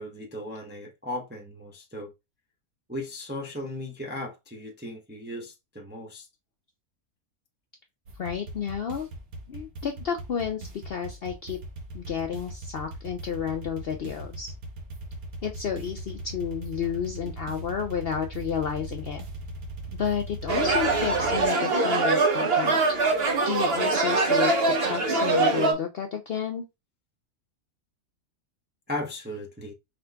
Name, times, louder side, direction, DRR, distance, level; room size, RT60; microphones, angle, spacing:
voice 1, 0.0-2.1 2.9-6.3 28.9-29.7, left 1 dB, 15° right, 0.4 m, -36 dB
sound 1, 8.1-21.5, right 1 dB, 80° right, 1.5 m, -39 dB
voice 2, 8.2-9.1 9.5-11.6 11.9-14.5 15.4-19.2 20.0-22.8 23.5-26.6, left 7 dB, 60° left, 0.6 m, -31 dB
sound 2, 20.5-25.7, right 3 dB, 45° right, 1.2 m, -23 dB
4.9 x 3.9 x 2.2 m
omnidirectional pair, 1.5 m